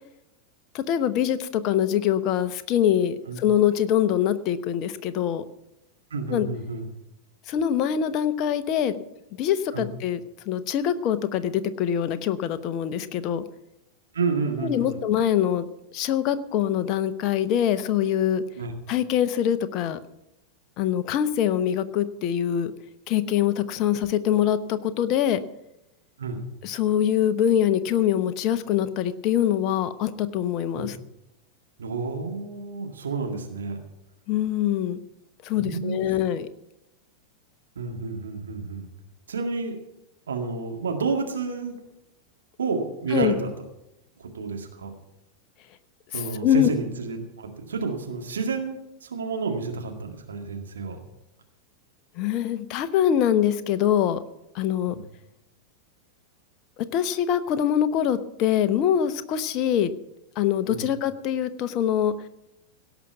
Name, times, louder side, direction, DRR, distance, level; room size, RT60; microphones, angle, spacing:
voice 1, 0.7-5.4 6.3-6.5 7.5-9.0 9.3-10.2 10.5-13.4 14.6-18.4 18.9-20.0 20.8-22.7 23.1-25.4 26.6-31.0 34.3-35.0 35.4-36.5 43.1-43.4 46.1-46.7 52.2-54.2 54.5-54.9 56.9-59.9 60.4-62.1, left 10 dB, 40° left, 12 dB, 0.9 m, -24 dB
voice 2, 6.1-6.8 9.7-9.9 14.1-15.0 18.6-18.7 26.2-26.4 30.8-31.0 31.8-33.8 35.5-35.9 37.8-38.9 39.3-39.8 40.3-41.8 42.6-43.5 44.2-44.9 46.1-51.0 54.9-55.0 60.7-60.9, right 4 dB, 70° right, 3 dB, 2.0 m, -30 dB
17.0 x 6.1 x 8.1 m, 0.88 s
figure-of-eight pair, 90°, 0 cm